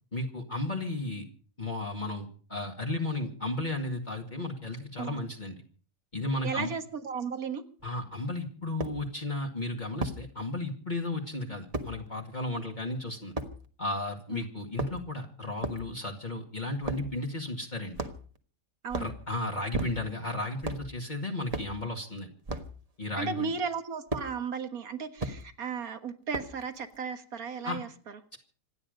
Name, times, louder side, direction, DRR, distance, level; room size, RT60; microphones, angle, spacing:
voice 1, 0.1-1.2 1.6-5.6 6.1-6.7 7.8-13.3 13.8-18.0 19.0-22.3 23.0-23.5 27.6-27.8 28.3-28.4, left 2 dB, 30° left, -1 dB, 2.5 m, -34 dB
voice 2, 6.4-7.6 14.3-14.5 18.8-19.1 23.2-27.9, right 6 dB, 90° right, 8 dB, 2.0 m, -35 dB
sound 1, 7.8-7.9 8.8-9.0 10.0-10.2 11.7-11.9 13.4-13.5 14.6-15.2 15.6-15.8 16.8-17.1 18.0-18.4 18.9-19.2 19.7-20.2 20.6-20.9 21.5-21.7 22.5-22.7 24.1-24.3 25.2-25.4 26.3-26.6, right 2 dB, 25° right, 1.5 m, -34 dB
26.5 x 10.0 x 5.3 m, 0.43 s
omnidirectional pair, 1.5 m